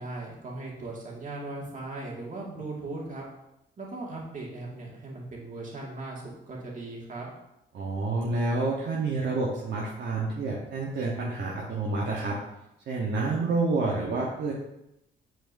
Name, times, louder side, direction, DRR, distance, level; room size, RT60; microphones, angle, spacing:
voice 1, 0.0-3.2 3.8-7.3, right 2 dB, 40° right, -3 dB, 2.0 m, -38 dB
voice 2, 7.7-12.4 12.9-14.5, right 3 dB, 60° right, -3 dB, 1.1 m, -28 dB
7.8 x 4.5 x 2.7 m, 0.85 s
cardioid pair, 90°, 20 cm